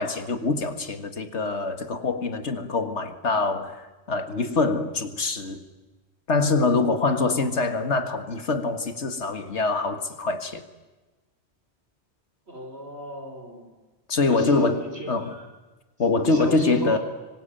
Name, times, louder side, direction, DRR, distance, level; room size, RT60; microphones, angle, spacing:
voice 1, 0.0-5.6 6.3-10.6 14.1-15.3 16.0-17.0, left 3 dB, 85° left, 9 dB, 2.1 m, -24 dB
voice 2, 12.5-13.7 14.3-15.5 16.3-17.0, right 1 dB, 70° right, 3 dB, 5.2 m, -35 dB
26.5 x 24.0 x 9.1 m, 1.2 s
omnidirectional pair, 1.1 m